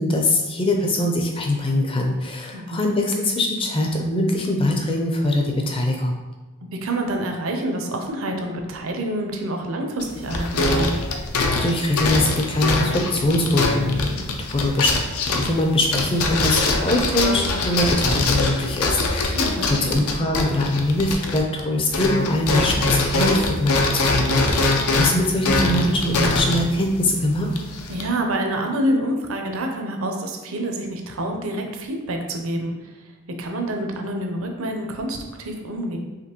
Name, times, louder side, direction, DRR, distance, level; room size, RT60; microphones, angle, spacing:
voice 1, 0.0-6.2 11.6-14.2 14.5-14.9 15.3-27.5, left 1 dB, 25° left, 2 dB, 0.5 m, -22 dB
voice 2, 2.5-2.8 6.8-11.0 19.3-20.0 27.9-33.0 33.4-36.0, right 1 dB, 65° right, 3 dB, 0.6 m, -27 dB
sound 1, 10.0-21.6 21.9-28.0, left 3 dB, 85° left, 0.5 m, -23 dB
5.0 x 3.0 x 2.9 m, 1.2 s
head